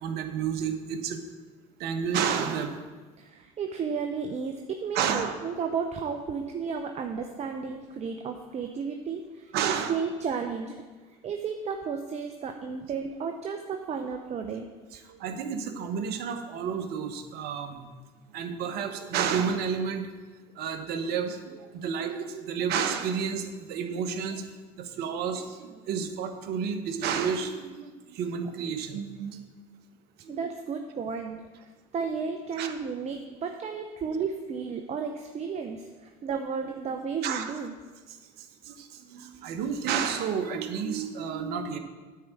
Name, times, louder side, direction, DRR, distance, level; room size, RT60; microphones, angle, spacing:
voice 1, 0.0-1.2 1.8-2.8 4.9-5.4 9.5-10.0 15.1-17.9 18.3-20.1 20.6-24.4 24.8-29.4 30.2-30.3 32.6-32.7 37.2-37.5 38.1-38.2 38.6-41.8, right 7 dB, 60° right, 6 dB, 1.1 m, -31 dB
voice 2, 3.2-10.8 11.2-14.7 14.9-15.0 30.3-31.4 31.9-37.8, right 5 dB, 40° right, 5 dB, 0.8 m, -33 dB
9.4 x 4.7 x 7.2 m, 1.3 s
hypercardioid pair, 75°, 18 cm